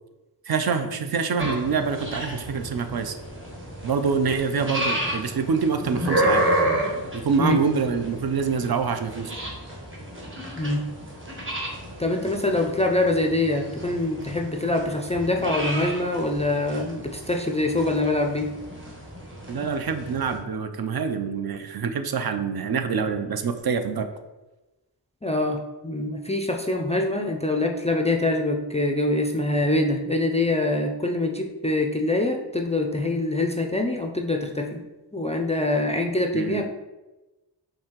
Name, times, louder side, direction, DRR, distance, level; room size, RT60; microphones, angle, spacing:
voice 1, 0.5-3.1 3.8-6.5 7.1-9.4 19.5-24.1 36.3-36.6, right 5 dB, 60° right, 7 dB, 0.5 m, -25 dB
sound 1, 1.4-20.4, right 1 dB, 30° right, 1.1 m, -31 dB
voice 2, 12.0-18.5 25.2-34.8 35.1-36.7, left 2 dB, 15° left, 2 dB, 0.3 m, -24 dB
5.3 x 2.8 x 2.9 m, 1.1 s
wide cardioid pair, 80°, 42 cm